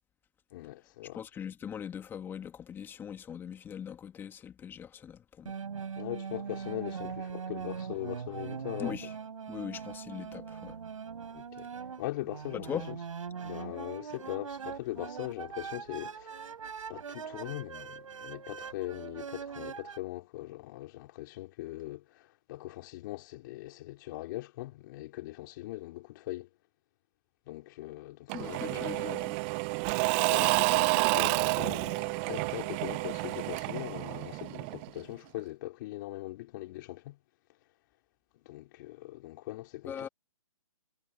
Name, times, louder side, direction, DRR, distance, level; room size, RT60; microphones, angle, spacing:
voice 1, 0.5-1.2 6.0-8.9 11.3-11.7 12.0-13.0 13.4-16.5 16.9-26.5 27.5-29.0 30.2-37.2 38.4-40.1, left 17 dB, 35° left, 4.3 m, -41 dB
voice 2, 1.1-5.6 8.8-9.1 9.5-10.8 12.5-12.9 28.3-29.4 39.9-40.1, left 8 dB, 10° left, 2.3 m, -40 dB
sound 1, 5.5-20.0, right 6 dB, 65° right, 6.6 m, -41 dB
Engine / Mechanisms / Drill, 28.3-35.0, right 26 dB, 20° right, 0.6 m, -29 dB
hypercardioid pair, 145°, 18 cm